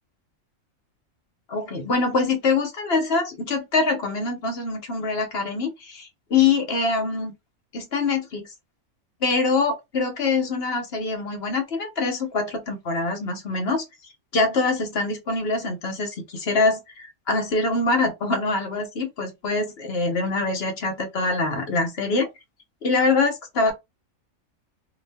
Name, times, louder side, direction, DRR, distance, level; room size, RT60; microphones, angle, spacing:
voice 1, 1.5-7.3 7.7-8.5 9.2-13.8 14.3-22.3 22.8-23.7, left 3 dB, 55° left, 1.0 m, -24 dB
2.7 x 2.7 x 3.4 m
omnidirectional pair, 1.4 m